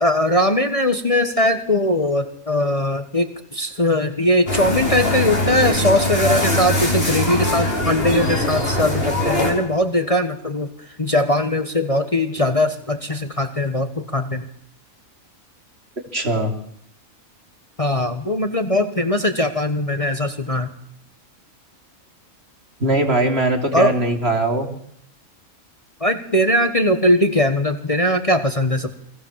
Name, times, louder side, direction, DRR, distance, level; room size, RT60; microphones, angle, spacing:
voice 1, 0.0-10.7 11.0-14.4 17.8-20.7 23.7-23.9 26.0-28.9, left 1 dB, 25° left, 8 dB, 1.4 m, -20 dB
sound 1, 4.5-9.5, left 1 dB, 45° left, 5.5 m, -21 dB
voice 2, 16.1-16.5 22.8-24.7, right 2 dB, 45° right, 4 dB, 3.5 m, -20 dB
29.0 x 21.5 x 7.5 m, 0.68 s
omnidirectional pair, 1.4 m